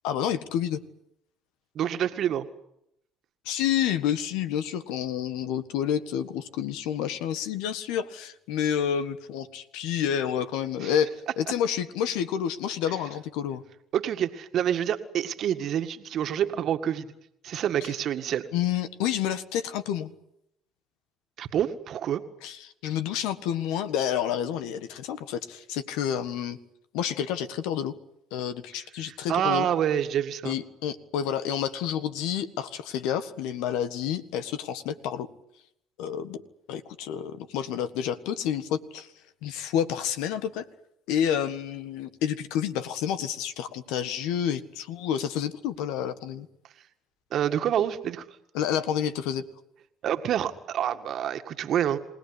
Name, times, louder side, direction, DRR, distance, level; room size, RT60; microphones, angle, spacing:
voice 1, 0.0-0.8 3.4-13.6 18.5-20.1 22.4-26.6 26.9-27.9 28.3-29.7 30.4-35.3 36.0-36.4 36.7-39.1 39.4-40.6 41.1-46.5 48.5-49.4, left 9 dB, 80° left, 12 dB, 1.6 m, -29 dB
voice 2, 1.8-2.5 10.8-10.9 12.9-13.0 13.9-17.1 17.4-18.4 21.4-22.2 29.0-30.6 47.3-48.2 50.0-52.0, right 10 dB, 60° right, 8 dB, 1.9 m, -27 dB
27.0 x 18.0 x 9.9 m, 0.80 s
hypercardioid pair, 65°, 0 cm